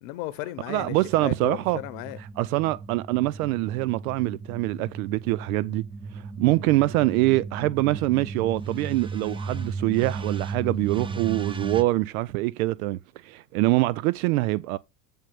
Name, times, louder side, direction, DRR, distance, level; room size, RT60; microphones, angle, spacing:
voice 1, 0.0-2.2, left 16 dB, 60° left, 0.9 m, -35 dB
sound 1, 0.7-11.8, right 4 dB, 10° right, 0.8 m, -36 dB
voice 2, 0.7-1.8 2.4-5.8 6.1-14.8, right 18 dB, 70° right, 0.6 m, -24 dB
8.9 x 3.5 x 5.8 m
hypercardioid pair, 80°, 45 cm